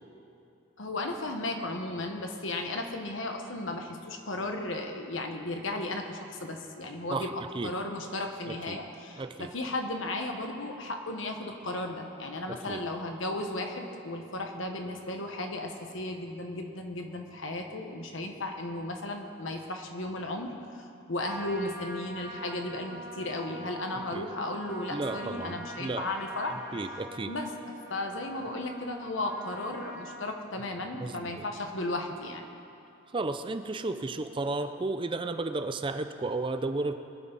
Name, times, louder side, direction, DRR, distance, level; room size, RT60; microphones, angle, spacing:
voice 1, 0.8-26.6 27.3-32.4, left 2 dB, 70° left, 3 dB, 1.3 m, -35 dB
voice 2, 9.2-9.5 12.5-12.8 24.1-24.2 24.9-26.1 26.7-27.3 31.0-31.4 33.1-37.0, right 2 dB, 25° right, 8 dB, 0.4 m, -33 dB
Trumpet, 21.2-30.2, right 1 dB, 45° right, 3.0 m, -44 dB
23.0 x 9.5 x 4.1 m, 2.7 s
head